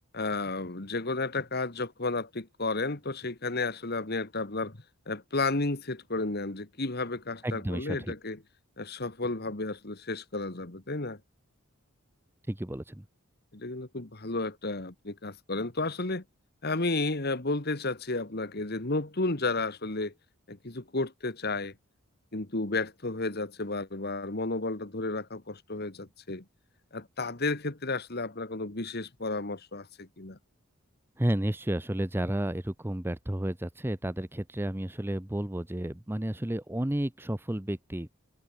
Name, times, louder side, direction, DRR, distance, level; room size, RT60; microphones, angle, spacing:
voice 1, 0.1-4.8 5.1-8.4 8.8-11.2 13.5-16.2 16.6-20.1 20.5-21.7 22.3-26.4 26.9-30.4, left 3 dB, 50° left, 1.9 m, -32 dB
voice 2, 7.4-8.1 12.5-13.0 31.2-38.1, right 1 dB, 10° right, 0.7 m, -32 dB
head